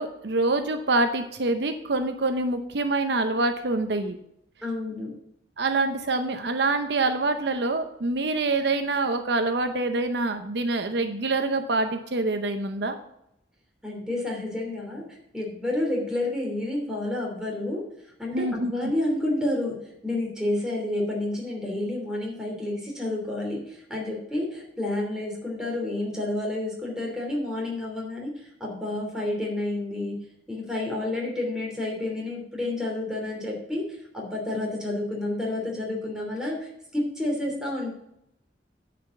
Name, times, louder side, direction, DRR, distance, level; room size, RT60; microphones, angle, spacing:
voice 1, 0.0-4.2 5.6-13.0 18.3-18.7, right 2 dB, 65° right, 7 dB, 0.8 m, -26 dB
voice 2, 4.6-5.1 13.8-15.0 15.3-17.8 18.2-19.8 20.0-28.3 28.6-30.2 30.5-33.8 34.1-37.9, left 1 dB, 5° right, -2 dB, 3.0 m, -29 dB
10.0 x 5.1 x 7.0 m, 0.77 s
head